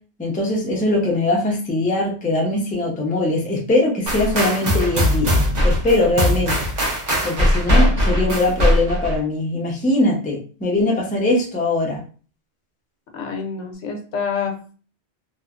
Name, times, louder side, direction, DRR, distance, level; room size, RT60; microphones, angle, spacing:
voice 1, 0.2-5.4 5.6-6.6 7.2-12.0, left 2 dB, 10° left, -2 dB, 0.4 m, -21 dB
sound 1, 4.1-9.2, equal, 45° right, 0.8 m, -19 dB
voice 2, 13.1-14.7, left 6 dB, 85° left, 2 dB, 1.0 m, -27 dB
3.0 x 2.1 x 2.3 m, 0.39 s
omnidirectional pair, 1.2 m